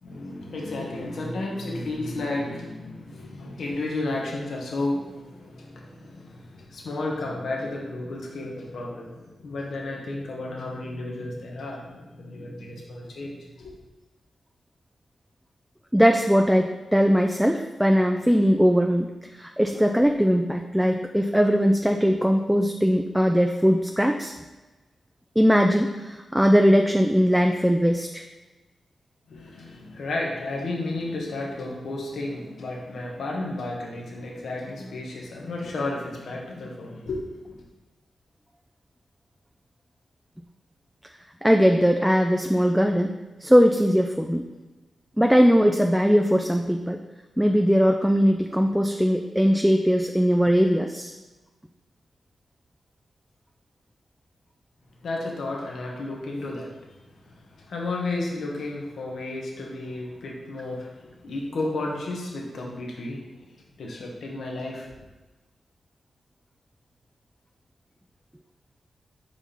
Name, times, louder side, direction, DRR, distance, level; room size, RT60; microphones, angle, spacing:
voice 1, 0.0-13.7 29.3-37.6 55.0-65.0, left 2 dB, 80° left, -2 dB, 1.4 m, -33 dB
voice 2, 15.9-24.3 25.4-28.2 41.4-43.1 43.4-44.5 45.2-47.0 47.4-51.1, equal, 5° right, 3 dB, 0.4 m, -20 dB
5.3 x 4.7 x 4.4 m, 1.2 s
cardioid pair, 65°, 0 cm